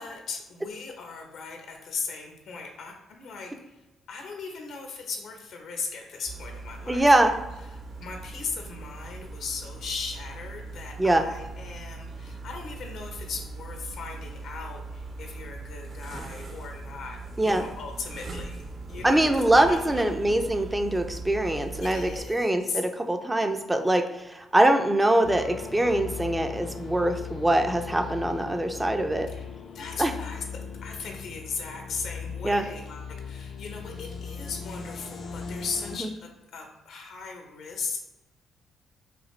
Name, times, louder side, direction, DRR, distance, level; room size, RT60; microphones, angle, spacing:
voice 1, 0.0-7.3 7.6-17.2 17.4-20.0 21.8-22.8 29.3-29.5 29.7-30.4 30.8-38.0, left 5 dB, 75° left, 2 dB, 0.8 m, -38 dB
sound 1, 6.3-22.2, right 3 dB, 50° right, 0.7 m, -40 dB
voice 2, 6.9-7.3 11.0-11.2 17.4-17.6 19.0-29.3 30.0-30.1 32.4-32.6 36.0-36.1, right 1 dB, 15° right, 6 dB, 0.4 m, -23 dB
sound 2, 25.2-36.0, left 6 dB, 60° left, 0.5 m, -39 dB
5.0 x 2.3 x 3.2 m, 1.0 s
cardioid pair, 90°, 0 cm